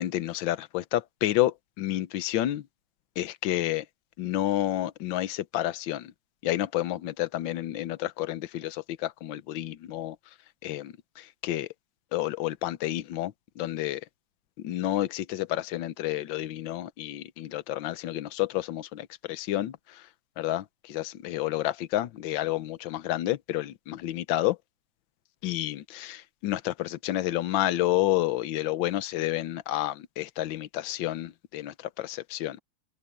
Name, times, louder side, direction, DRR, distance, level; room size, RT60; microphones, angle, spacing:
voice 1, 0.0-2.7 3.2-3.8 4.2-6.1 6.4-10.2 10.6-11.7 12.1-14.0 14.6-20.1 20.4-24.6 25.4-32.6, left 14 dB, 70° left, 1.5 m, -30 dB
omnidirectional pair, 2.3 m